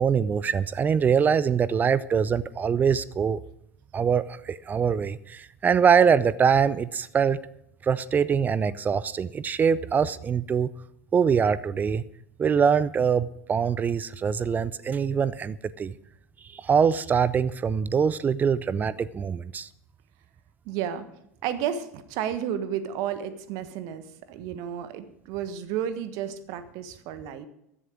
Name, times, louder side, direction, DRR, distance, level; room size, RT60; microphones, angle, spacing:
voice 1, 0.0-3.4 3.9-7.4 7.8-10.7 11.1-12.0 12.4-15.9 16.5-19.7, right 7 dB, 20° right, 19 dB, 0.5 m, -23 dB
voice 2, 20.6-21.1 21.4-27.5, right 9 dB, 50° right, 12 dB, 1.4 m, -32 dB
15.0 x 11.0 x 5.0 m, 0.77 s
figure-of-eight pair, 80°, 8 cm